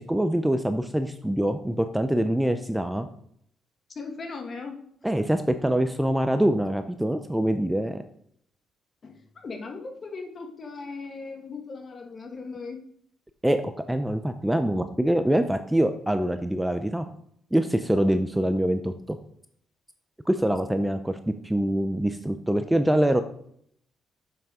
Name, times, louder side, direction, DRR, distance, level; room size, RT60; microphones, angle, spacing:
voice 1, 0.0-3.1 5.0-8.0 13.4-13.6 13.9-17.1 17.5-19.2 20.3-23.2, right 1 dB, 5° right, 9 dB, 0.6 m, -24 dB
voice 2, 3.9-4.8 9.0-12.8, left 4 dB, 40° left, 5 dB, 1.6 m, -38 dB
7.2 x 6.2 x 4.9 m, 0.67 s
cardioid pair, 90°, 0 cm